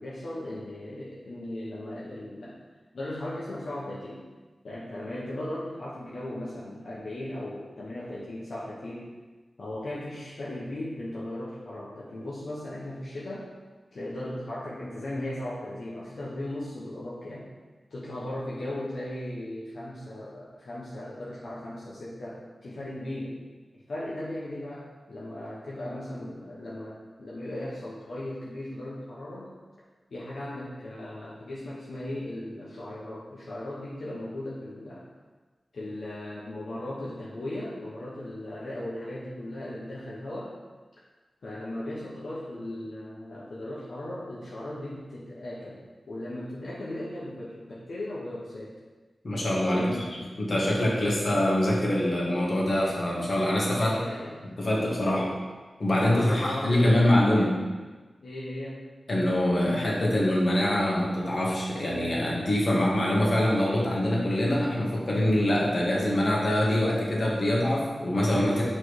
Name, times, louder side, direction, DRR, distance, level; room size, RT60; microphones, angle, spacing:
voice 1, 0.0-2.6 2.9-4.2 4.6-9.1 9.6-13.5 13.9-17.5 17.9-23.4 23.7-29.5 30.1-35.1 35.7-40.6 41.4-45.8 46.1-48.7 49.6-50.1 53.7-54.5 55.0-55.4 56.0-57.7 58.2-58.8, left 1 dB, 75° left, -7 dB, 1.1 m, -37 dB
voice 2, 49.2-53.9 54.4-55.3 55.8-57.5 59.1-68.6, left 1 dB, 55° left, -4 dB, 1.5 m, -24 dB
6.2 x 3.3 x 4.7 m, 1.3 s
wide cardioid pair, 70°, 0 cm